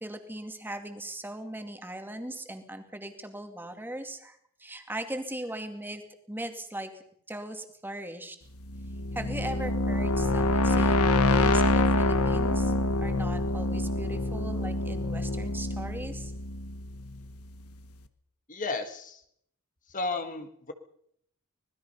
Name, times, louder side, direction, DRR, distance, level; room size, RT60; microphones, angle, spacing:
voice 1, 0.0-6.0 6.3-6.9 7.3-8.4 9.1-16.3, right 1 dB, 10° right, 6 dB, 2.4 m, -39 dB
sound 1, 8.6-17.4, left 2 dB, 90° left, 1.4 m, -26 dB
voice 2, 18.5-19.2 19.9-20.7, left 3 dB, 35° left, 7 dB, 1.7 m, -33 dB
25.5 x 20.0 x 5.6 m, 0.70 s
head